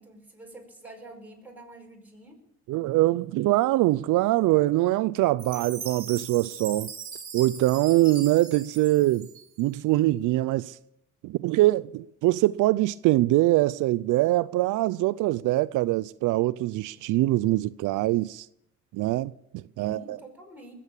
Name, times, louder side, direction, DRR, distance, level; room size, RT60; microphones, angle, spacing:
voice 1, 0.0-2.4 19.8-20.7, right 2 dB, 5° right, 5.2 m, -47 dB
voice 2, 2.7-6.9 7.3-9.3 9.6-10.8 11.2-18.5 18.9-20.2, right 17 dB, 85° right, 0.5 m, -23 dB
Chime, 5.4-9.8, right 6 dB, 45° right, 2.7 m, -40 dB
20.5 x 8.4 x 7.2 m
cardioid pair, 90°, 30 cm